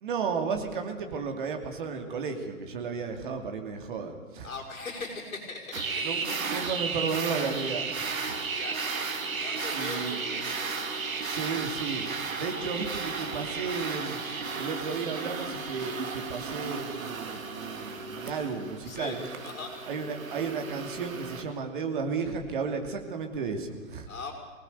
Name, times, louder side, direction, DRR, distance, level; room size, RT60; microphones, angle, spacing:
voice 1, 0.0-4.5 6.0-8.1 9.7-10.2 11.2-12.0 12.4-14.2 14.5-19.2 19.9-24.1, right 5 dB, 35° right, 4 dB, 2.8 m, -33 dB
voice 2, 4.4-6.5 8.5-8.8 9.4-10.8 18.8-19.2 19.4-19.8 24.1-24.3, left 4 dB, 60° left, 2 dB, 5.9 m, -40 dB
sound 1, 5.7-21.4, right 4 dB, 65° right, 3.2 m, -34 dB
24.5 x 19.0 x 6.9 m, 1.4 s
hypercardioid pair, 165°, 44 cm